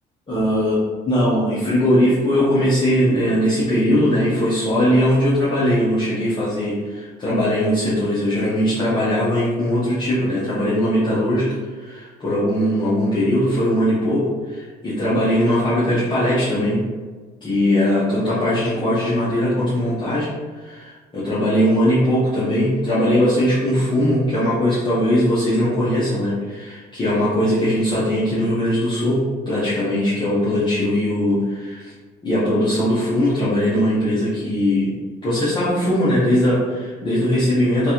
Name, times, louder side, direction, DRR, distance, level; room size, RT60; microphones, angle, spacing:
voice 1, 0.3-11.5 11.7-16.8 17.4-20.3 20.6-31.9 32.2-34.9 35.2-37.9, equal, 25° left, -9 dB, 0.9 m, -20 dB
3.1 x 2.5 x 2.9 m, 1.4 s
cardioid pair, 110°, 17 cm